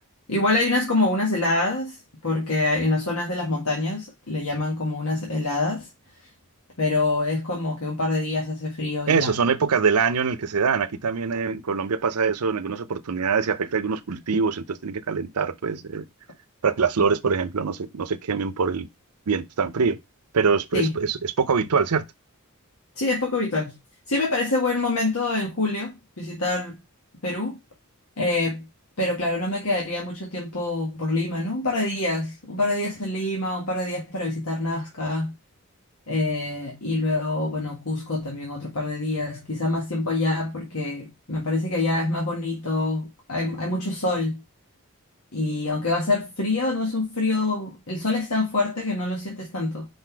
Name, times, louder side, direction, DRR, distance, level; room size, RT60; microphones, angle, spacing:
voice 1, 0.3-1.9 2.2-5.9 6.8-9.3 20.7-21.0 22.9-23.7 24.1-26.8 27.2-27.6 28.2-28.6 29.0-35.3 36.1-44.4 45.3-49.9, left 2 dB, 70° left, 1.7 m, -26 dB
voice 2, 9.1-16.1 16.6-18.9 19.3-20.0 20.3-22.0, right 5 dB, 90° right, 0.6 m, -24 dB
5.2 x 4.0 x 4.6 m
head